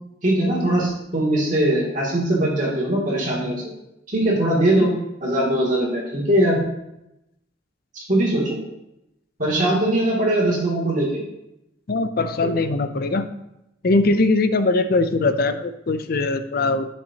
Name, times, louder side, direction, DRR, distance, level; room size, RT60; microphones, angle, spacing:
voice 1, 0.2-3.6 4.1-4.9 5.2-6.6 7.9-8.6 9.4-11.2 12.4-12.5, right 1 dB, 40° right, -3 dB, 2.5 m, -21 dB
voice 2, 11.9-13.3 13.8-16.9, left 3 dB, 50° left, 10 dB, 0.5 m, -21 dB
10.0 x 6.6 x 2.8 m, 0.87 s
head